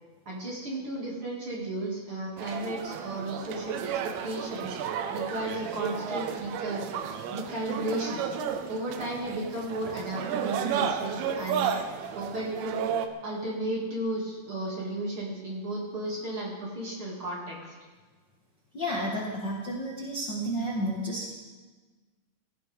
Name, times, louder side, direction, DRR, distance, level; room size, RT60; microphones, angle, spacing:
voice 1, 0.2-4.8 5.1-6.8 7.3-8.3 8.7-11.7 12.1-12.9 13.2-17.7, right 1 dB, 35° right, -4 dB, 2.7 m, -34 dB
sound 1, 2.4-13.1, right 8 dB, 85° right, 3.1 m, -33 dB
voice 2, 18.7-21.3, equal, 80° left, -5 dB, 1.0 m, -31 dB
17.0 x 16.0 x 3.7 m, 1.3 s
omnidirectional pair, 5.2 m